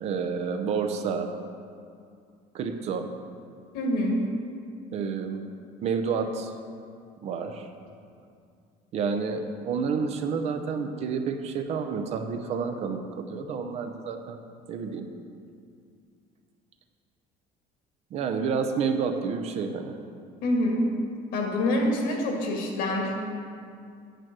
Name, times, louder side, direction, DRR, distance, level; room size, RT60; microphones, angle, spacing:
voice 1, 0.0-1.3 2.5-3.1 4.9-5.5 5.8-6.5 7.2-7.7 8.9-14.4 14.7-15.1 18.1-20.0, right 5 dB, 45° right, 6 dB, 0.7 m, -29 dB
voice 2, 3.7-4.2 20.4-20.8 21.3-23.1, left 1 dB, 80° left, 0 dB, 2.2 m, -26 dB
9.0 x 7.7 x 6.1 m, 2.3 s
cardioid pair, 170°, 16 cm